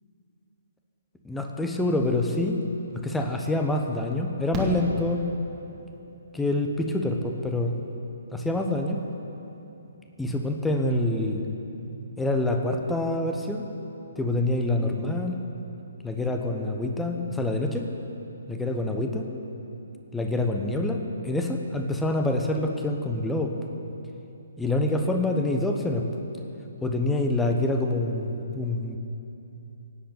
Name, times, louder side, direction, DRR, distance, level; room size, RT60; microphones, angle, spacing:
voice 1, 1.2-2.6 3.0-5.2 6.3-7.7 8.3-9.0 10.2-11.5 12.2-13.6 14.2-15.4 16.0-17.9 18.5-19.3 20.1-23.5 24.6-26.1 26.8-29.0, left 2 dB, 5° left, 3 dB, 1.1 m, -26 dB
Fireworks, 2.8-2.9 4.5-5.8 7.6-7.7 7.9-8.0, right 1 dB, 15° right, 1.9 m, -33 dB
17.5 x 8.0 x 8.6 m, 2.9 s
figure-of-eight pair, 130°, 0 cm